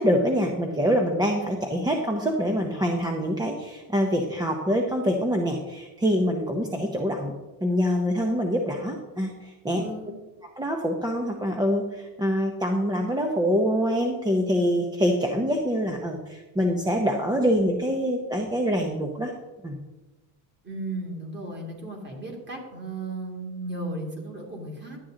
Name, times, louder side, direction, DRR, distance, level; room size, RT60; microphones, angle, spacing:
voice 1, 0.0-7.3 7.6-9.8 10.6-19.3 19.6-19.8, equal, 10° right, 2 dB, 0.8 m, -25 dB
voice 2, 9.8-10.1 20.6-25.0, right 2 dB, 25° right, 1 dB, 2.4 m, -35 dB
11.5 x 8.7 x 3.8 m, 1.1 s
cardioid pair, 145°, 40 cm